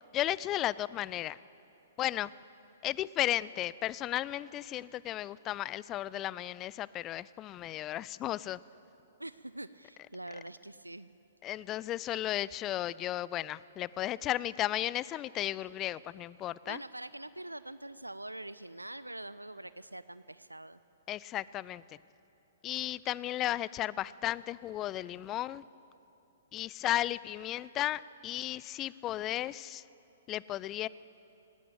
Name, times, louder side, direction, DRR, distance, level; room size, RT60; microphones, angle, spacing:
voice 1, 0.1-1.4 2.0-2.3 2.8-8.6 11.4-16.8 21.1-21.8 22.6-25.6 26.5-29.8 30.3-30.9, left 13 dB, 25° left, 20 dB, 0.4 m, -34 dB
voice 2, 9.2-11.1 16.6-20.8, right 1 dB, 85° right, 15 dB, 0.5 m, -44 dB
18.0 x 17.5 x 8.5 m, 2.9 s
figure-of-eight pair, 115°, 0 cm